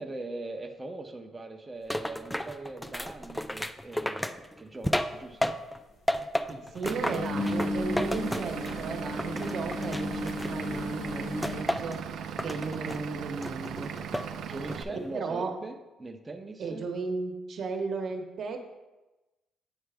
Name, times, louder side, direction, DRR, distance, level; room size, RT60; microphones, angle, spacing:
voice 1, 0.0-5.6 14.4-16.8, right 2 dB, 20° right, 4 dB, 0.7 m, -41 dB
sound 1, 1.9-5.8 6.1-8.9 9.2-10.8 11.4-12.0 12.4-13.0 13.4-14.3 14.7-15.1, left 1 dB, 5° left, 0.3 m, -33 dB
sound 2, 5.1-5.2 7.0-11.6, left 2 dB, 75° left, 1.1 m, -34 dB
voice 2, 6.5-12.0 12.4-13.9 14.9-15.5 16.6-18.6, right 4 dB, 60° right, 4 dB, 1.0 m, -35 dB
Vehicle / Engine, 6.8-14.8, right 8 dB, 75° right, 0.4 m, -38 dB
8.9 x 4.7 x 3.4 m, 1.1 s
cardioid pair, 90°, 0 cm